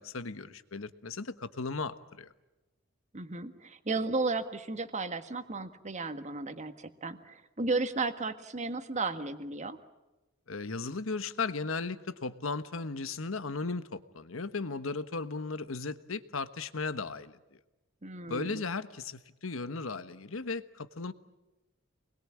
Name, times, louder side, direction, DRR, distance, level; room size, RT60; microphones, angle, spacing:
voice 1, 0.0-2.3 10.5-17.4 18.3-21.1, left 4 dB, 85° left, 12 dB, 1.3 m, -36 dB
voice 2, 3.1-9.8 18.0-18.6, right 3 dB, 35° right, 9 dB, 1.7 m, -34 dB
28.5 x 21.5 x 8.7 m, 1.0 s
head